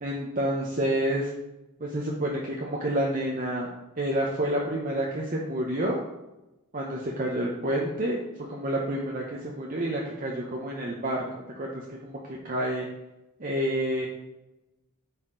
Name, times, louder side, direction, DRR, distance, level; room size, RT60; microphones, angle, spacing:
voice 1, 0.0-1.3 1.8-3.7 4.0-6.0 6.7-8.2 8.5-12.9 13.4-14.1, right 1 dB, 40° right, -2 dB, 0.8 m, -29 dB
9.8 x 4.2 x 3.8 m, 0.98 s
head